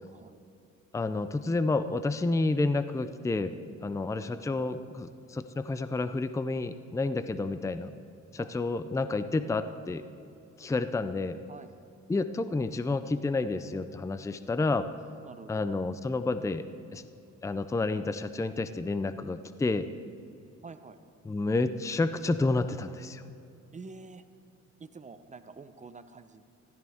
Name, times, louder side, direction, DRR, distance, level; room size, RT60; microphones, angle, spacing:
voice 1, 0.9-3.5 3.8-7.9 8.3-10.0 10.6-11.4 12.1-14.9 15.5-16.6 16.9-17.0 17.4-19.9 21.2-23.2, left 3 dB, 10° left, 11 dB, 0.5 m, -30 dB
voice 2, 20.6-21.0 23.7-24.2 24.8-26.4, right 4 dB, 25° right, 11 dB, 0.7 m, -47 dB
16.0 x 13.5 x 3.6 m, 2.6 s
cardioid pair, 90°, 30 cm